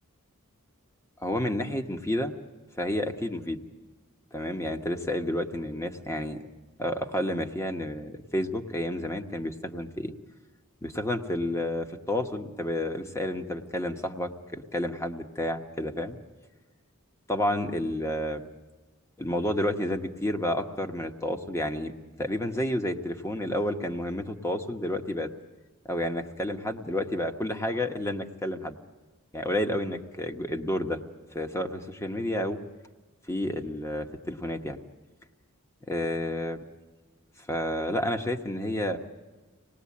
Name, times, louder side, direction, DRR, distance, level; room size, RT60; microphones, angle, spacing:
voice 1, 1.2-2.3 2.8-3.6 4.3-6.4 6.8-10.1 10.8-16.2 17.3-18.5 19.2-21.9 22.2-25.3 25.8-28.8 29.3-31.0 31.3-32.6 33.3-34.8 35.9-36.6 37.5-39.0, left 1 dB, 15° left, 5 dB, 1.2 m, -30 dB
26.0 x 19.0 x 8.5 m, 1.3 s
head